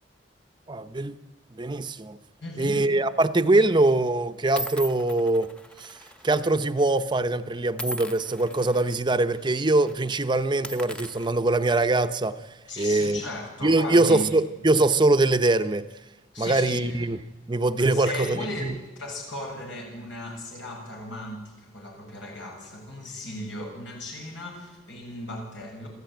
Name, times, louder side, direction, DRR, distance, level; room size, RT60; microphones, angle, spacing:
voice 1, 0.7-1.2 1.5-2.2 2.6-5.5 5.8-6.0 6.2-12.4 12.8-13.2 13.6-15.9 16.4-17.2 17.5-18.7, right 2 dB, 25° right, 0.7 m, -23 dB
voice 2, 2.4-2.8 12.7-14.3 16.3-17.0 17.8-25.9, left 1 dB, 85° left, 7.4 m, -36 dB
sound 1, 2.9-3.2 3.9-4.0 4.6-6.5 6.8-7.0 7.8-8.9 9.4-9.5 9.8-10.0 10.5-12.1, right 1 dB, 5° left, 0.8 m, -39 dB
27.0 x 14.0 x 9.1 m
head